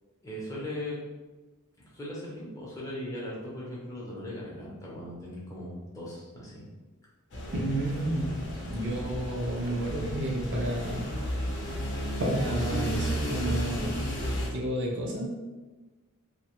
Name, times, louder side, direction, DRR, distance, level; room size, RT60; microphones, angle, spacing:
voice 1, 0.2-1.0 1.9-6.6, left 1 dB, 15° left, -6 dB, 0.6 m, -38 dB
sound 1, 7.3-14.5, equal, 55° left, 0.6 m, -33 dB
voice 2, 7.5-11.1 12.2-14.1 14.5-15.3, right 1 dB, 55° right, -2 dB, 0.6 m, -31 dB
2.8 x 2.1 x 2.9 m, 1.2 s
head